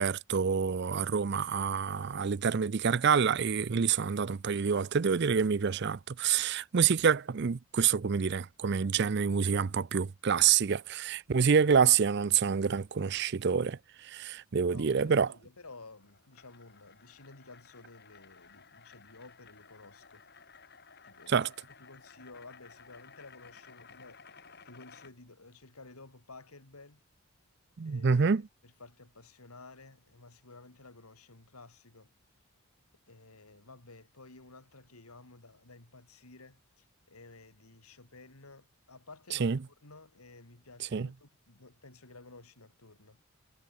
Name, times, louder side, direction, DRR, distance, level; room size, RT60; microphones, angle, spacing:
voice 1, 0.0-13.8 14.1-15.3 21.3-21.5 27.8-28.4 39.4-39.6 40.9-41.1, right 6 dB, 50° right, 0.5 m, -27 dB
voice 2, 14.7-20.5 21.0-24.2 24.6-27.0 27.8-28.3 28.6-32.1 33.1-43.2, left 3 dB, 85° left, 2.9 m, -53 dB
sound 1, 15.6-25.1, left 5 dB, 45° left, 5.7 m, -56 dB
head